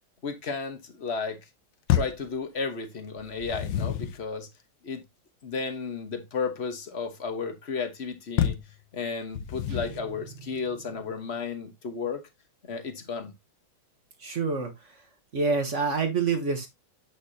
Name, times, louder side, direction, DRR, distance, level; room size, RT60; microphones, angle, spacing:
voice 1, 0.2-1.4 1.9-4.5 4.8-5.0 5.4-8.6 8.9-12.2 12.6-13.3, left 5 dB, 40° left, 1.1 m, -33 dB
sound 1, 1.9-2.3 3.2-4.2 8.4-8.7 9.3-10.1, left 10 dB, 70° left, 1.4 m, -28 dB
sound 2, 9.7-11.7, right 6 dB, 85° right, 2.4 m, -48 dB
voice 2, 14.2-15.0 15.3-16.7, right 4 dB, 40° right, 1.4 m, -27 dB
8.1 x 5.7 x 2.7 m
omnidirectional pair, 2.2 m